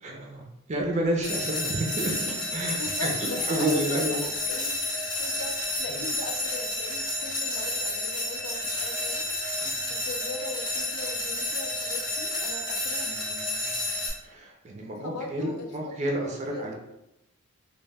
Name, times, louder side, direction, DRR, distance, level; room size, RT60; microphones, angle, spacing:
voice 1, 0.0-4.2 5.9-6.1 9.6-9.9 13.0-13.8 14.2-16.7, right 1 dB, 30° right, -1 dB, 0.4 m, -31 dB
sound 1, 1.2-14.1, left 1 dB, 20° left, 0.5 m, -30 dB
voice 2, 2.7-4.8 5.2-9.3 9.9-13.2 15.0-16.7, left 3 dB, 80° left, 4 dB, 0.4 m, -39 dB
2.2 x 2.1 x 3.3 m, 0.89 s
head